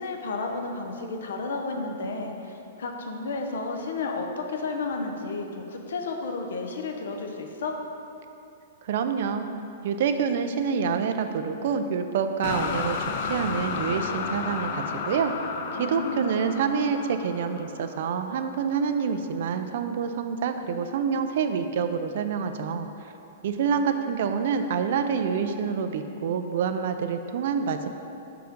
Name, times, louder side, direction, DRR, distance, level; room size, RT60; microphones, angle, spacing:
voice 1, 0.0-7.8 15.8-16.3, left 3 dB, 80° left, 3 dB, 0.8 m, -32 dB
voice 2, 8.8-9.5 9.8-15.3 15.7-22.9 23.4-27.9, right 6 dB, 50° right, 8 dB, 0.4 m, -27 dB
sound 1, 12.4-18.5, left 5 dB, 40° left, 0.4 m, -32 dB
6.3 x 4.7 x 5.2 m, 2.8 s
hypercardioid pair, 175°, 0 cm